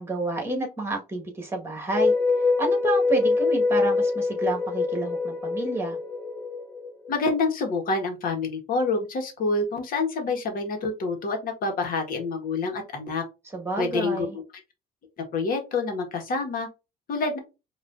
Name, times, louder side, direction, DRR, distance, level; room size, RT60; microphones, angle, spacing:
voice 1, 0.0-2.1 2.6-6.0 13.5-14.4, right 2 dB, 15° right, 2 dB, 1.8 m, -29 dB
sound 1, 1.9-7.1, left 4 dB, 25° left, 2.1 m, -24 dB
voice 2, 7.1-13.2 13.8-14.3 15.3-16.7 17.1-17.4, left 3 dB, 55° left, 3 dB, 1.8 m, -27 dB
5.0 x 3.0 x 2.7 m, 0.27 s
cardioid pair, 110°, 17 cm